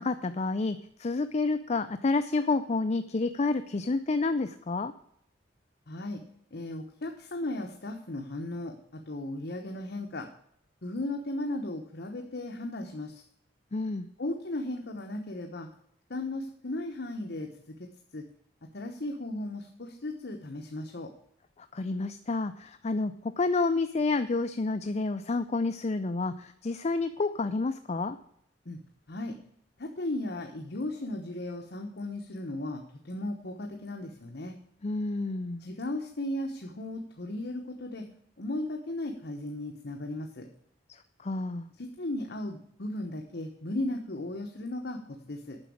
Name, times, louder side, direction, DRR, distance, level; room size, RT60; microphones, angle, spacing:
voice 1, 0.0-4.9 13.7-14.1 21.6-28.2 34.8-35.6 40.9-41.7, left 3 dB, 35° left, 9 dB, 0.5 m, -29 dB
voice 2, 5.9-6.2 6.5-10.3 10.8-13.2 14.2-15.7 16.1-18.3 18.7-21.1 28.6-28.8 29.1-29.4 29.8-34.5 35.6-38.1 38.4-40.5 41.8-45.6, left 1 dB, 60° left, 3 dB, 1.1 m, -36 dB
9.8 x 6.2 x 8.5 m, 0.69 s
head